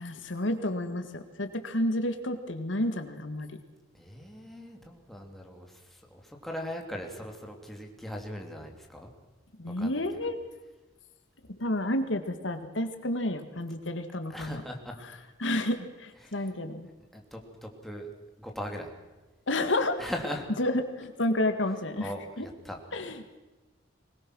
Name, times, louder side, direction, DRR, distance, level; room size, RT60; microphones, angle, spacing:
voice 1, 0.0-3.6 9.6-10.4 11.6-14.6 15.4-16.9 19.5-20.0 20.6-22.5 22.9-23.4, left 1 dB, 75° left, 8 dB, 1.8 m, -30 dB
voice 2, 3.9-9.1 9.8-10.0 14.3-15.0 16.2-16.5 17.1-18.1 18.4-18.9 20.0-20.5 22.0-22.8, equal, ahead, 1 dB, 2.9 m, -39 dB
23.0 x 20.0 x 6.2 m, 1.2 s
head